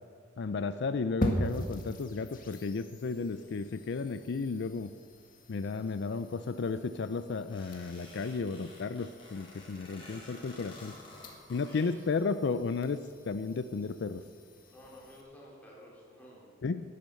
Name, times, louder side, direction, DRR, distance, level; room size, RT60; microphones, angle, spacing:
voice 1, 0.4-4.9 5.5-10.9 11.5-13.0 13.3-14.2 16.6-16.8, left 4 dB, 60° left, 12 dB, 0.4 m, -33 dB
sound 1, 1.2-15.2, equal, 45° left, 1.8 m, -42 dB
sound 2, 7.5-11.9, left 1 dB, 30° left, 4.4 m, -51 dB
voice 2, 11.7-12.2 14.6-16.5, left 1 dB, 10° left, -5 dB, 3.9 m, -52 dB
11.0 x 11.0 x 7.6 m, 2.1 s
head